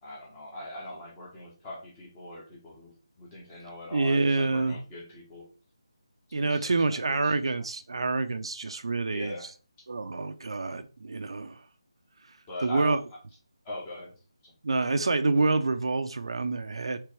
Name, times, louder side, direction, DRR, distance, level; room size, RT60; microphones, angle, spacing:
voice 1, 0.0-5.5 6.3-7.7 9.1-9.5 12.5-13.0 13.6-14.5, left 1 dB, 15° left, 1.5 m, -42 dB
voice 2, 3.9-4.8 6.3-9.3 9.9-11.6 12.6-13.0 14.6-17.0, right 3 dB, 70° right, 0.5 m, -27 dB
4.5 x 3.3 x 3.3 m
figure-of-eight pair, 165°, 3 cm